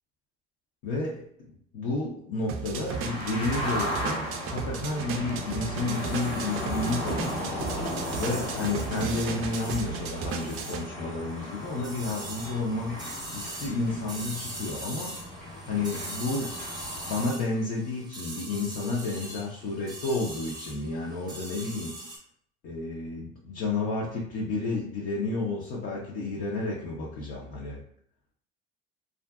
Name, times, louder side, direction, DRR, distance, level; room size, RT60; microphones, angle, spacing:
voice 1, 0.8-7.4 8.2-13.0 13.3-15.1 15.7-16.6 17.0-22.0 22.6-27.8, left 3 dB, 50° left, -5 dB, 0.6 m, -31 dB
sound 1, 2.5-10.8, right 6 dB, 45° right, 0.4 m, -35 dB
sound 2, 2.9-17.2, left 1 dB, 80° left, 1.0 m, -36 dB
sound 3, 5.6-22.2, right 2 dB, 15° right, 0.7 m, -42 dB
2.5 x 2.4 x 2.3 m, 0.65 s
hypercardioid pair, 70°, 31 cm